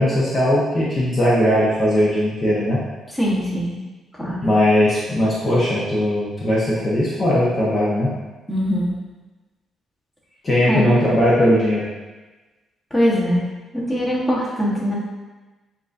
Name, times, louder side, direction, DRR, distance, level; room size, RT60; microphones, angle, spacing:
voice 1, 0.0-2.8 4.4-8.1 10.4-11.8, left 1 dB, 35° left, -7 dB, 1.0 m, -19 dB
voice 2, 3.1-3.7 4.1-4.4 8.5-8.9 10.7-10.9 12.9-13.4 13.7-14.9, equal, 15° left, -5 dB, 1.3 m, -21 dB
7.2 x 2.7 x 2.6 m, 1.2 s
cardioid pair, 90°, 0 cm